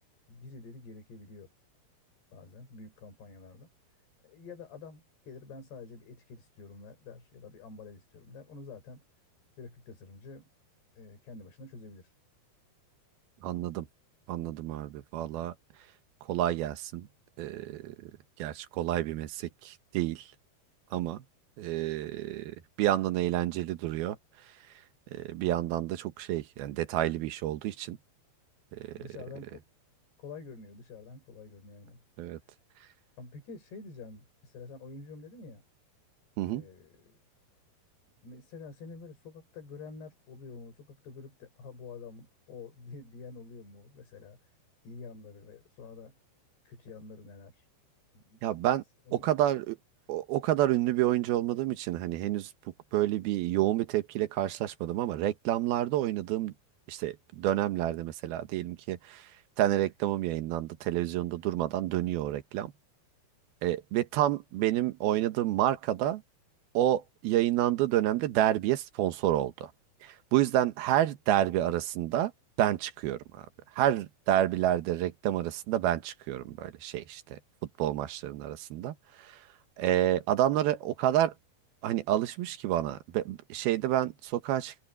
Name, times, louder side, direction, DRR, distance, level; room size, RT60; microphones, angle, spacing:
voice 1, 0.3-1.5 2.3-3.7 4.2-9.0 9.6-10.5 11.0-12.1 28.9-29.6 30.2-32.4 33.2-35.6 36.5-37.2 38.2-44.4 44.8-46.2 46.6-47.7 48.1-48.4 49.1-49.3, left 4 dB, 90° left, 8.3 m, -48 dB
voice 2, 13.4-13.9 14.3-15.5 16.3-17.1 17.4-18.1 18.4-20.3 20.9-21.2 21.6-24.2 25.1-28.0 28.7-28.9 32.2-32.4 36.4-36.7 48.4-48.8 49.1-49.8 50.1-52.5 52.9-56.5 56.9-59.3 59.6-62.7 63.6-66.2 66.7-69.7 70.0-72.3 72.6-73.4 73.8-77.4 77.8-79.4 79.8-81.3 81.8-84.9, right 13 dB, 75° right, 3.0 m, -29 dB
omnidirectional pair, 4.6 m